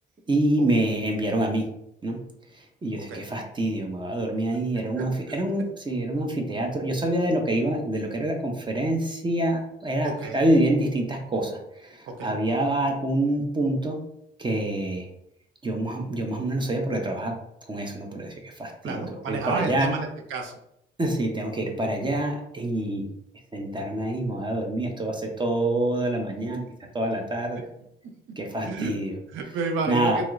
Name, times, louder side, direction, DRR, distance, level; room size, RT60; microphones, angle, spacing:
voice 1, 0.3-1.7 2.0-2.2 2.5-14.0 14.4-15.1 15.6-17.3 17.7-19.9 21.0-23.0 23.5-26.7 26.9-27.6 28.4-29.1 29.9-30.2, right 1 dB, 25° right, 2 dB, 0.6 m, -26 dB
voice 2, 5.0-5.4 10.0-10.4 12.1-12.4 18.8-20.6 28.0-28.1 28.6-28.9 29.3-30.3, right 3 dB, 80° right, 4 dB, 0.5 m, -31 dB
3.1 x 2.8 x 2.4 m, 0.77 s
cardioid pair, 90°, 20 cm